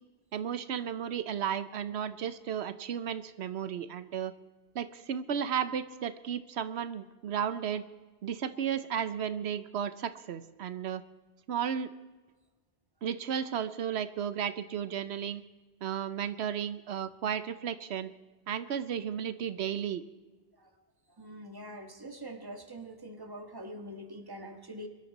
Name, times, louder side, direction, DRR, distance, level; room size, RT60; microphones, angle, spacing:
voice 1, 0.3-4.3 4.7-7.8 8.2-11.0 11.5-11.9 13.0-15.4 15.8-18.1 18.5-20.0, right 8 dB, 85° right, 13 dB, 1.0 m, -34 dB
voice 2, 21.2-24.9, right 1 dB, 20° right, 6 dB, 1.6 m, -44 dB
23.5 x 12.5 x 4.1 m, 1.3 s
omnidirectional pair, 1.1 m